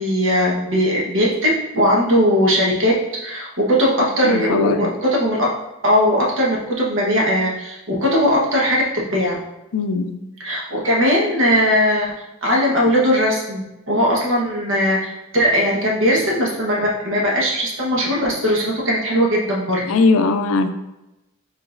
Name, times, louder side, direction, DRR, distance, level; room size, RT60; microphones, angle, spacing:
voice 1, 0.0-2.9 3.2-5.5 5.8-9.4 10.4-12.1 12.4-19.8, equal, 65° right, -3 dB, 1.1 m, -19 dB
voice 2, 4.2-4.9 9.7-10.1 19.9-20.7, left 3 dB, 75° left, 9 dB, 0.4 m, -19 dB
4.9 x 3.9 x 2.5 m, 0.94 s
head